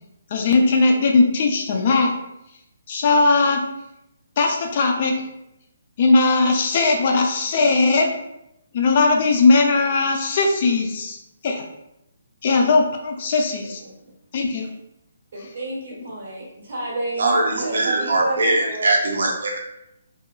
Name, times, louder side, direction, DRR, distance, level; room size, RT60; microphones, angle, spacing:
voice 1, 0.3-2.1 2.9-3.6 4.4-5.2 6.0-8.1 8.7-11.2 11.4-11.6 12.4-13.8 14.3-14.7, left 3 dB, 40° left, 2 dB, 0.4 m, -18 dB
voice 2, 15.3-19.0, right 2 dB, 55° right, -5 dB, 1.2 m, -30 dB
voice 3, 17.2-19.6, right 2 dB, 75° right, -1 dB, 0.5 m, -21 dB
2.9 x 2.3 x 2.2 m, 0.84 s
hypercardioid pair, 165°, 0 cm